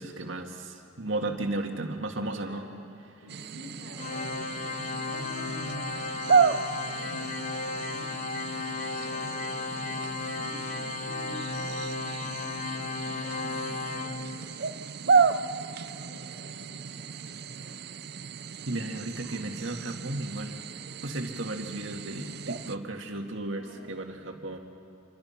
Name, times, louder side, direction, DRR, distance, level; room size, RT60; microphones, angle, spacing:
voice 1, 0.0-2.7 18.7-20.6 21.0-24.6, right 2 dB, 75° right, 3 dB, 2.0 m, -34 dB
voice 2, 2.4-2.8 3.2-6.1 6.8-8.1 8.9-13.6 14.1-17.8 23.5-23.9, left 1 dB, 70° left, -2 dB, 7.1 m, -49 dB
sound 1, 3.3-22.8, right 5 dB, 55° right, 0.6 m, -32 dB
Organ, 4.0-14.8, left 4 dB, 40° left, 0.7 m, -35 dB
Telephone, 4.2-4.3 6.5-6.6 6.9-7.4 7.8-7.9 8.3-8.5 8.7-8.9 9.4-9.5 9.9-10.0 10.3-10.8 11.8-11.9 13.4-13.5, equal, ahead, 0.5 m, -45 dB
27.5 x 24.5 x 5.9 m, 2.7 s
head